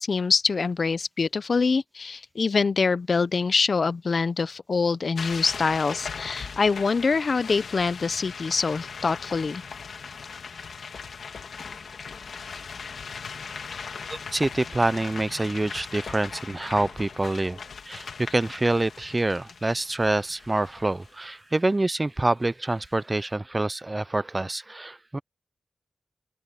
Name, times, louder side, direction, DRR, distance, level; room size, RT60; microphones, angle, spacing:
voice 1, 0.0-9.6, left 4 dB, 60° left, 0.6 m, -25 dB
sound 1, 5.2-21.1, left 5 dB, 90° left, 2.2 m, -39 dB
voice 2, 14.3-17.6 17.9-25.2, right 2 dB, 25° right, 0.4 m, -26 dB
wide cardioid pair, 80°, 0 cm